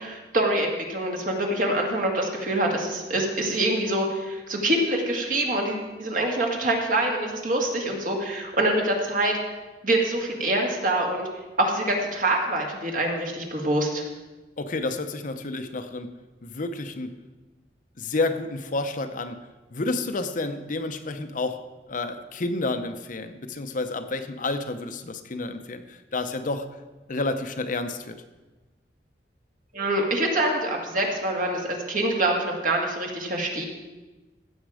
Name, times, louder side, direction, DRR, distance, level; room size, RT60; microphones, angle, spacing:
voice 1, 0.0-9.4 9.8-11.3 11.6-14.0 29.7-33.7, right 1 dB, 50° right, 1 dB, 2.1 m, -25 dB
voice 2, 14.6-16.1 16.4-17.2 18.0-19.4 19.7-21.6 21.9-26.8 27.1-28.2, left 2 dB, 50° left, 8 dB, 0.7 m, -30 dB
15.5 x 7.3 x 4.9 m, 1.2 s
head